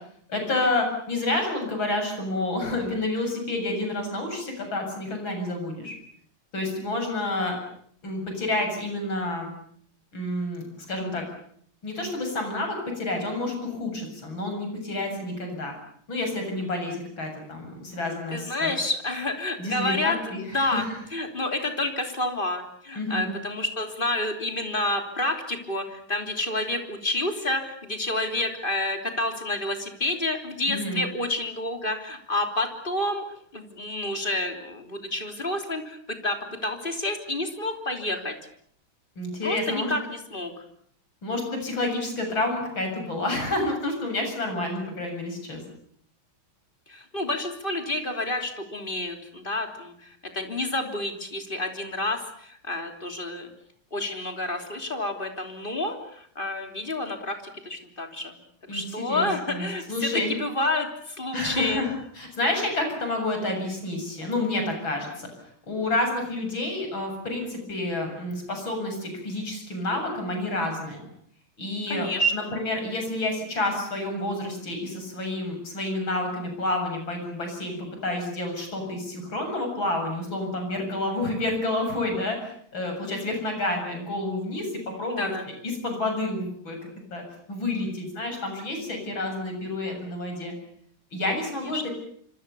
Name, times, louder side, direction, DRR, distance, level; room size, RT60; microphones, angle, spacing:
voice 1, 0.3-5.9 6.5-7.6 8.0-9.5 10.1-11.2 11.8-15.8 16.1-18.7 19.6-21.0 22.9-23.3 30.7-31.0 39.2-39.9 41.2-45.6 58.7-60.3 61.3-65.3 65.7-71.1 71.6-85.3 85.6-86.8 87.1-87.2 87.5-90.5 91.1-91.9, left 2 dB, 70° left, 4 dB, 8.2 m, -29 dB
voice 2, 18.3-20.2 20.5-20.9 21.1-33.2 33.5-36.0 36.2-38.4 39.4-40.5 46.9-53.5 53.9-57.4 57.7-58.3 58.7-61.9 71.9-72.4 85.2-85.4 91.7-91.8, left 1 dB, 25° left, 5 dB, 3.5 m, -29 dB
26.5 x 26.5 x 7.0 m, 0.65 s
omnidirectional pair, 2.3 m